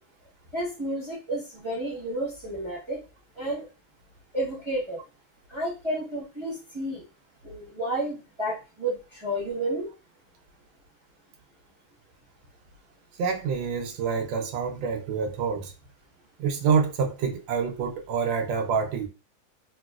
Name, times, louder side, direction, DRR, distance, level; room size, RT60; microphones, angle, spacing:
voice 1, 0.5-3.0 3.4-3.7 4.3-5.0 5.5-7.0 7.4-9.9, right 1 dB, 20° right, -6 dB, 0.9 m, -31 dB
voice 2, 13.2-15.7 16.4-19.1, right 6 dB, 90° right, 4 dB, 1.3 m, -27 dB
2.9 x 2.9 x 2.3 m, 0.29 s
omnidirectional pair, 2.0 m